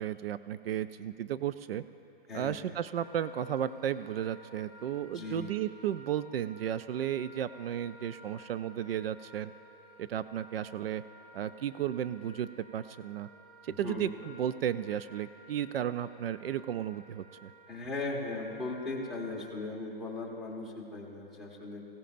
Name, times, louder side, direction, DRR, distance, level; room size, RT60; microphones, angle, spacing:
voice 1, 0.0-1.8 2.3-9.5 10.0-11.0 11.3-13.3 13.6-17.5, right 10 dB, 80° right, 14 dB, 0.5 m, -34 dB
voice 2, 2.3-2.8 5.1-5.5 13.7-14.1 17.7-21.9, left 3 dB, ahead, -4 dB, 1.5 m, -38 dB
Wind instrument woodwind instrument, 3.0-19.6, equal, 50° right, 2.0 m, -55 dB
19.5 x 16.5 x 2.5 m, 2.8 s
hypercardioid pair, 155°, 29 cm